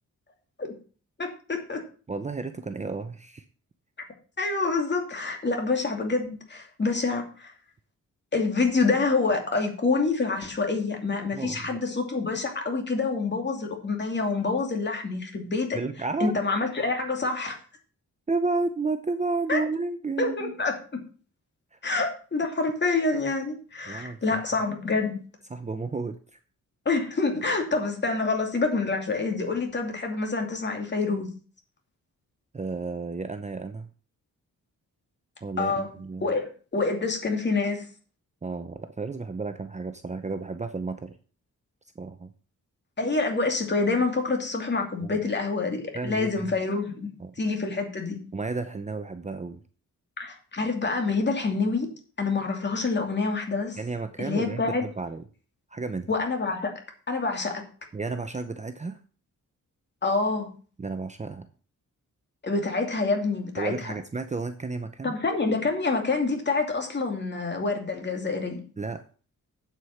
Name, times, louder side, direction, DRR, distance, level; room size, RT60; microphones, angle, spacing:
voice 1, 1.2-1.8 4.4-7.5 8.3-15.8 16.2-17.6 19.5-19.6 20.2-20.8 21.8-25.2 26.8-31.3 35.6-35.9 36.2-37.9 43.0-47.1 47.4-48.2 50.2-51.9 52.2-53.8 54.2-54.8 56.1-56.7 57.1-57.6 60.0-60.5 62.4-63.7 65.0-68.6, left 3 dB, 35° left, 3 dB, 2.6 m, -27 dB
voice 2, 2.1-3.4 11.3-11.8 15.7-16.3 18.3-20.6 21.7-21.8 23.9-24.2 25.5-26.4 32.5-33.9 35.4-36.3 38.4-41.2 42.0-42.3 45.0-45.2 45.9-46.6 47.2-47.3 48.3-49.6 53.8-55.2 55.7-56.1 57.9-59.0 60.8-61.5 63.6-65.1 68.8-69.0, right 3 dB, 20° right, 8 dB, 0.7 m, -32 dB
8.2 x 8.1 x 5.8 m, 0.39 s
wide cardioid pair, 150°, 31 cm